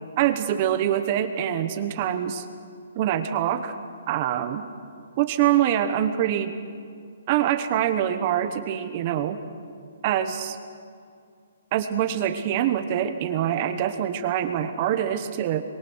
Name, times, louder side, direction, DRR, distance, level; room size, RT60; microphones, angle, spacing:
voice 1, 0.2-2.4 2.9-3.7 4.1-4.6 5.2-6.6 7.3-9.4 10.0-10.6 11.7-15.6, right 10 dB, 30° right, 8 dB, 1.1 m, -24 dB
23.5 x 23.0 x 6.4 m, 2.2 s
hypercardioid pair, 165°, 0 cm